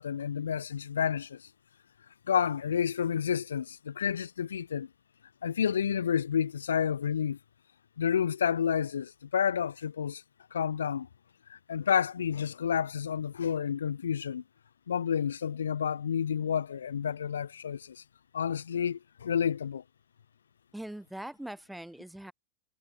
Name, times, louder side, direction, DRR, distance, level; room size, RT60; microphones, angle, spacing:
voice 1, 0.0-1.5 2.3-4.9 5.4-7.4 8.0-10.2 10.5-11.1 11.5-14.4 14.9-18.0 18.3-19.8, left 8 dB, 70° left, 0.5 m, -30 dB
voice 2, 20.7-22.3, right 1 dB, 5° right, 3.6 m, -41 dB
figure-of-eight pair, 90°, 0 cm